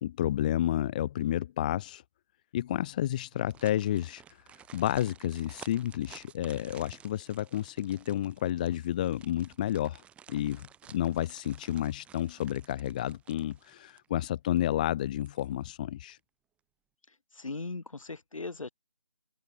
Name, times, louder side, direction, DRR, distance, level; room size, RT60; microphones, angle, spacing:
voice 1, 0.0-2.0 2.5-4.2 4.7-10.0 10.3-16.2, left 12 dB, 15° left, 0.9 m, -31 dB
sound 1, 3.3-14.2 14.6-14.7 15.1-15.8 16.1-16.2, right 9 dB, 5° right, 6.4 m, -54 dB
voice 2, 17.3-18.7, left 3 dB, 60° left, 3.0 m, -38 dB
figure-of-eight pair, 155°, 19 cm